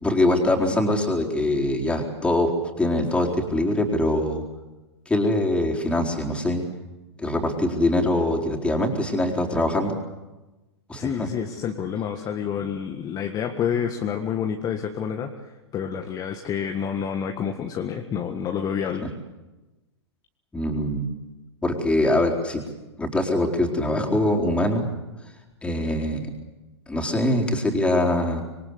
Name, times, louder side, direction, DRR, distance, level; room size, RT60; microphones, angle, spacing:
voice 1, 0.0-2.5 2.8-4.4 5.1-6.6 7.2-10.0 10.9-11.3 20.5-21.1 21.6-22.6 23.0-24.9 25.6-26.3 26.9-28.4, left 1 dB, 10° left, 1 dB, 4.2 m, -23 dB
voice 2, 11.0-19.1, left 7 dB, 25° left, 4 dB, 1.7 m, -28 dB
26.0 x 23.0 x 8.2 m, 1.1 s
figure-of-eight pair, 105°, 15 cm